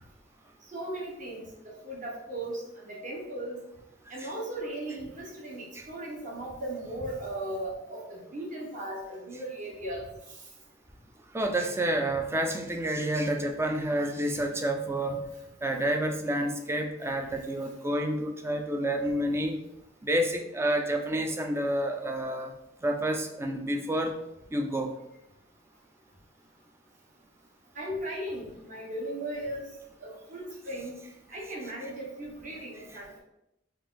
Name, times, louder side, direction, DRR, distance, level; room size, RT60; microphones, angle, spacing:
voice 1, 0.7-1.4 1.8-3.6 4.1-10.1 27.7-29.7 30.0-31.0 31.3-33.2, right 1 dB, 45° right, -3 dB, 1.2 m, -37 dB
voice 2, 11.3-15.3 15.6-19.5 20.0-22.5 22.8-24.1 24.5-24.9, right 1 dB, 15° right, 4 dB, 0.4 m, -29 dB
4.4 x 2.6 x 3.8 m, 0.85 s
head